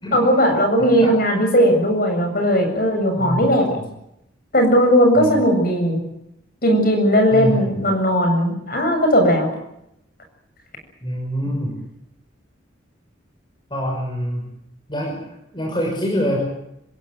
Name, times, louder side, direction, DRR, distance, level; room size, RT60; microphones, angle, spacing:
voice 1, 0.1-3.8 4.5-6.0 6.6-9.5, equal, 45° left, 5 dB, 7.5 m, -17 dB
voice 2, 3.2-3.5 5.2-5.3 7.3-7.9 11.0-11.7 13.7-14.4 14.9-15.1 15.5-16.4, equal, 25° left, -1 dB, 6.0 m, -24 dB
26.5 x 16.5 x 9.2 m, 0.80 s
head